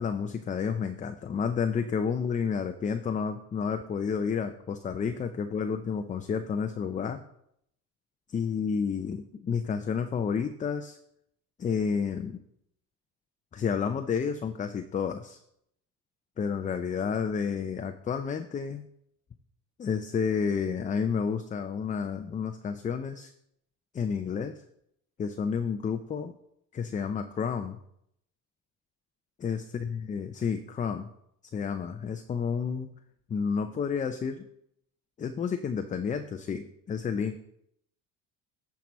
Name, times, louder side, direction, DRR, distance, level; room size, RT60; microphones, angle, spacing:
voice 1, 0.0-7.2 8.3-11.0 11.6-12.4 13.5-15.4 16.4-18.9 19.8-23.3 23.9-24.5 25.2-26.3 26.7-27.8 29.4-31.1 31.5-32.9 33.3-34.4 35.2-37.4, left 6 dB, 25° left, 8 dB, 0.5 m, -30 dB
10.5 x 4.8 x 4.1 m, 0.74 s
supercardioid pair, 95°, 30 cm